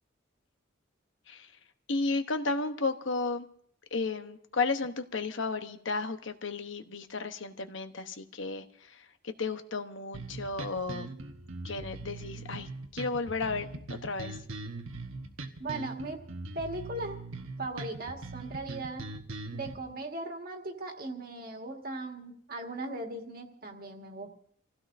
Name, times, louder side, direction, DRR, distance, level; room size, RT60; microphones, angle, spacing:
voice 1, 1.9-3.5 3.9-11.1 11.6-14.4, left 3 dB, 65° left, 8 dB, 1.0 m, -33 dB
sound 1, 10.1-19.7, right 2 dB, 80° right, 1.2 m, -41 dB
voice 2, 15.6-16.2 16.5-17.2 17.6-19.0 19.5-24.3, right 2 dB, 45° right, 3 dB, 1.8 m, -38 dB
27.5 x 16.0 x 2.6 m, 0.66 s
head